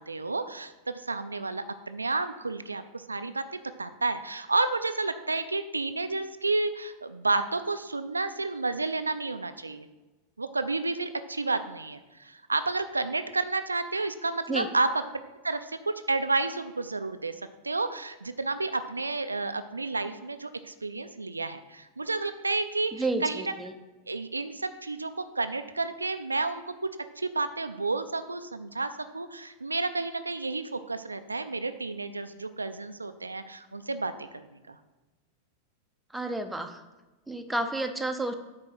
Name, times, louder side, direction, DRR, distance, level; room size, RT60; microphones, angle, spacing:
voice 1, 0.0-9.9 10.4-15.0 15.4-23.5 24.1-34.8, right 3 dB, 80° right, 10 dB, 0.4 m, -31 dB
voice 2, 22.9-23.7 36.1-36.8 37.3-38.3, right 2 dB, 5° right, 6 dB, 0.7 m, -31 dB
8.8 x 3.8 x 6.2 m, 1.2 s
figure-of-eight pair, 90°, 0 cm